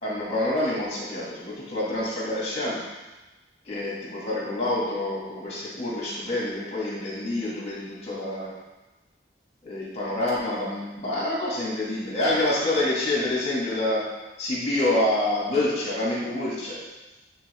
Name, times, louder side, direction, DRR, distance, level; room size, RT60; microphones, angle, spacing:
voice 1, 0.0-2.8 3.7-8.5 9.6-14.0 14.4-16.8, left 1 dB, 35° left, -6 dB, 2.5 m, -27 dB
9.5 x 3.8 x 3.7 m, 1.1 s
head